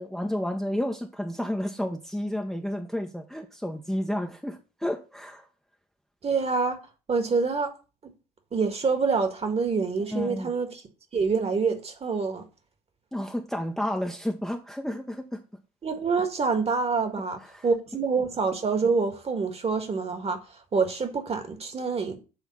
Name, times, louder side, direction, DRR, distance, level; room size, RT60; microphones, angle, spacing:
voice 1, 0.0-5.5 10.1-10.5 13.1-15.4 17.4-17.7, left 1 dB, ahead, 0.9 m, -31 dB
voice 2, 6.2-6.8 7.1-7.7 8.0-8.1 8.5-10.8 11.1-12.4 15.8-22.2, right 4 dB, 30° right, 1.7 m, -26 dB
8.2 x 3.5 x 5.6 m
hypercardioid pair, 60°, 20 cm